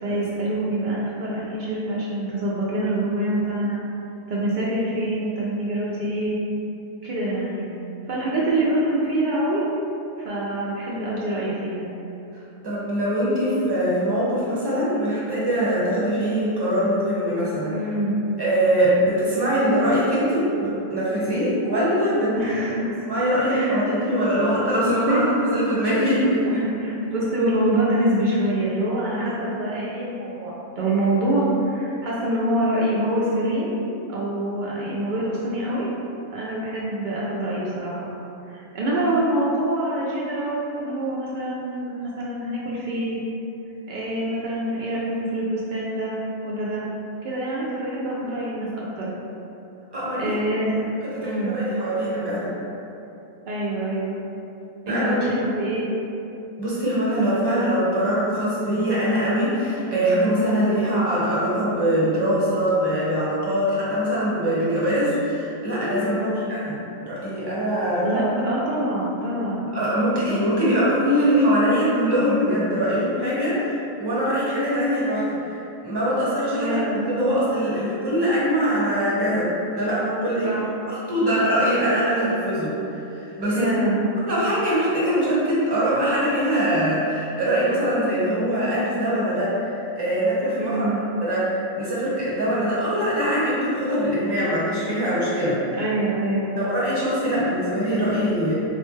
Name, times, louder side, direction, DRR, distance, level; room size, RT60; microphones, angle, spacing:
voice 1, 0.0-3.8 4.3-6.4 7.0-7.7 8.1-9.6 10.2-11.9 17.7-18.2 22.3-23.0 23.5-24.0 24.8-25.3 26.5-33.8 34.1-35.9 36.3-38.1 38.5-43.2 43.9-46.2 46.4-46.8 47.2-49.1 50.2-50.8 51.2-51.6 53.5-54.2 54.9-55.9 60.5-61.0 66.0-66.4 68.0-69.7 76.6-77.0 80.4-80.6 83.6-84.0 90.6-91.0 95.8-96.6, right 1 dB, 80° right, -6 dB, 0.4 m, -25 dB
voice 2, 12.6-17.8 18.4-22.4 23.1-26.5 49.9-50.3 51.0-52.5 54.9-55.1 56.6-66.8 67.1-68.2 69.7-79.5 79.7-80.6 80.9-83.7 84.3-90.8 91.2-95.8 96.6-98.5, equal, 20° right, -8 dB, 0.8 m, -22 dB
4.1 x 2.1 x 3.1 m, 2.9 s
omnidirectional pair, 1.4 m